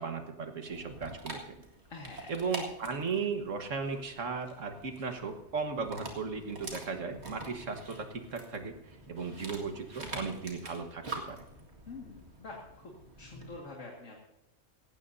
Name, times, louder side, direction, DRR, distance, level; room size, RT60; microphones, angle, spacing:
voice 1, 0.0-1.6 2.3-11.4, right 5 dB, 90° right, 6 dB, 1.8 m, -36 dB
Dog, 0.7-13.6, right 2 dB, 60° right, 2.3 m, -46 dB
voice 2, 1.9-2.3 11.9-12.9 13.2-14.2, left 3 dB, 80° left, -1 dB, 2.3 m, -46 dB
18.0 x 16.0 x 2.7 m, 0.91 s
omnidirectional pair, 1.3 m